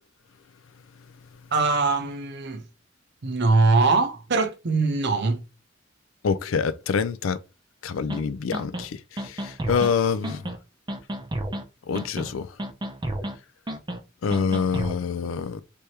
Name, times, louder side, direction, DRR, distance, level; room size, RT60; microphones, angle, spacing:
voice 1, 1.5-2.7 3.2-5.4, right 3 dB, 60° right, 0.7 m, -22 dB
voice 2, 6.2-7.4 7.8-10.4 11.9-12.5 14.2-15.6, left 5 dB, 85° left, 0.4 m, -26 dB
sound 1, 8.1-8.2 8.5-8.8 9.2-9.9 10.2-10.6 10.9-11.6 11.9-12.3 12.6-13.3 13.7-14.0 14.3-15.0, right 1 dB, 20° right, 0.5 m, -31 dB
3.4 x 3.2 x 2.8 m
head